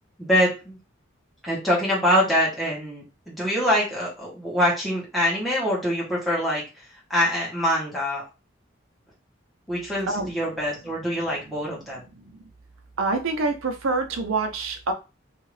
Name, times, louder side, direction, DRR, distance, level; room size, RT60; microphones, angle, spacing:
voice 1, 0.2-0.8 1.4-6.6 7.1-8.2 9.7-12.0, equal, ahead, -7 dB, 1.1 m, -24 dB
voice 2, 13.0-14.9, right 3 dB, 85° right, 6 dB, 0.7 m, -26 dB
2.7 x 2.4 x 3.2 m, 0.28 s
head